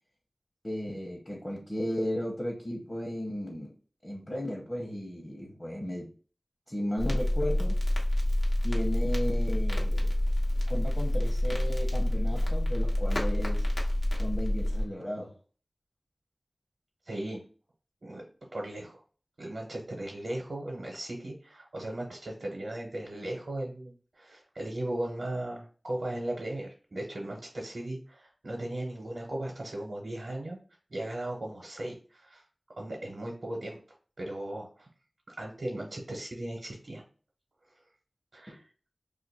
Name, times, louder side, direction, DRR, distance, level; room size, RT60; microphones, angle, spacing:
voice 1, 0.6-3.7 4.0-6.1 6.7-7.8 8.6-10.1 10.7-13.7 14.2-15.3 38.5-38.6, equal, 30° left, 0.9 m, -35 dB
Crackle, 7.0-14.8, left 1 dB, 65° left, 0.8 m, -27 dB
voice 2, 17.1-17.4 18.0-18.2 18.5-19.0 19.4-30.6 30.9-32.4 32.8-33.8 34.2-34.9 35.4-37.0 38.3-38.6, right 1 dB, 85° right, 0.8 m, -37 dB
2.6 x 2.5 x 4.1 m
wide cardioid pair, 60°, 0 cm